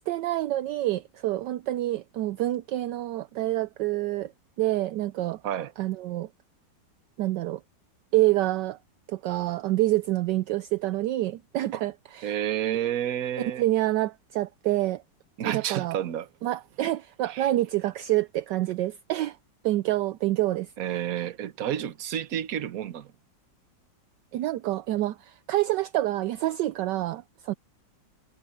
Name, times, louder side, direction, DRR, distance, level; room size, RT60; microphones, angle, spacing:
voice 1, 0.0-4.3 4.6-5.4 5.8-6.3 7.2-7.6 8.1-8.8 9.1-12.3 13.4-15.0 15.4-16.0 16.4-19.4 19.6-20.7 24.3-27.5, right 16 dB, 75° right, 1.2 m, -27 dB
voice 2, 12.2-13.6 15.4-16.3 17.3-17.5 20.8-23.1, right 10 dB, 55° right, 1.3 m, -30 dB
omnidirectional pair, 2.0 m